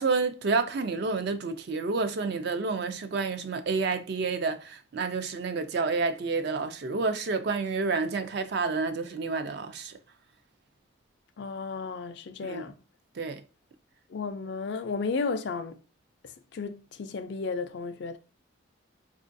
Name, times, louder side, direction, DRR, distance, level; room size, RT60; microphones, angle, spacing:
voice 1, 0.0-10.0 12.4-12.6 13.2-13.4, right 4 dB, 55° right, 0.4 m, -29 dB
voice 2, 11.4-12.7 14.1-15.8 16.2-18.2, left 4 dB, 55° left, 0.4 m, -33 dB
4.4 x 2.4 x 2.5 m
head